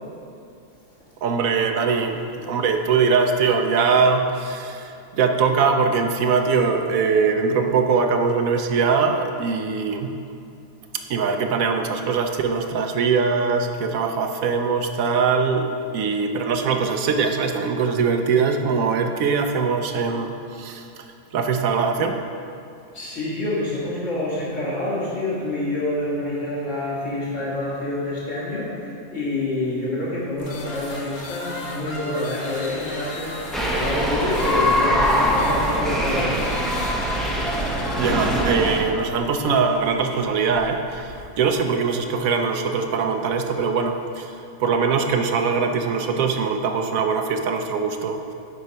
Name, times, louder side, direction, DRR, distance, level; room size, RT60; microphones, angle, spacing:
voice 1, 1.2-10.1 11.1-21.1 21.3-22.2 38.0-48.3, right 5 dB, 70° right, 5 dB, 1.0 m, -22 dB
voice 2, 22.9-36.4, left 2 dB, 55° left, -8 dB, 2.7 m, -27 dB
sound 1, 30.4-43.6, left 2 dB, 80° left, 1.6 m, -37 dB
sound 2, 33.5-38.8, equal, ahead, 0.5 m, -22 dB
9.5 x 4.6 x 5.4 m, 2.5 s
omnidirectional pair, 1.5 m